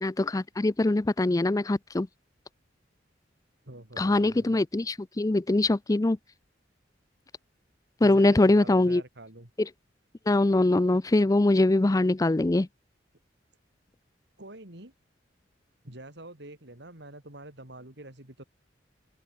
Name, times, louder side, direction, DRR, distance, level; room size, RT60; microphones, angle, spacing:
voice 1, 0.0-2.1 4.0-6.2 8.0-9.0 10.3-12.7, left 2 dB, 20° left, 0.4 m, -23 dB
voice 2, 3.6-4.6 8.0-9.5 14.4-14.9 15.8-18.4, right 1 dB, 65° right, 4.7 m, -46 dB
open air
head